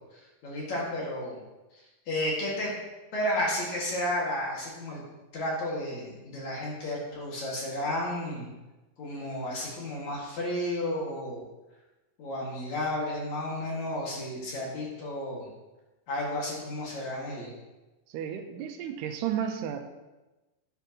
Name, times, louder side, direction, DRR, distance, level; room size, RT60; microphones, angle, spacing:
voice 1, 0.4-1.4 2.1-2.7 3.1-5.0 5.3-8.5 9.0-11.4 12.2-15.5 16.1-17.5, left 1 dB, 50° left, -4 dB, 3.1 m, -32 dB
voice 2, 18.1-19.8, right 9 dB, 90° right, 6 dB, 2.9 m, -32 dB
11.0 x 10.5 x 3.0 m, 1.1 s
omnidirectional pair, 4.7 m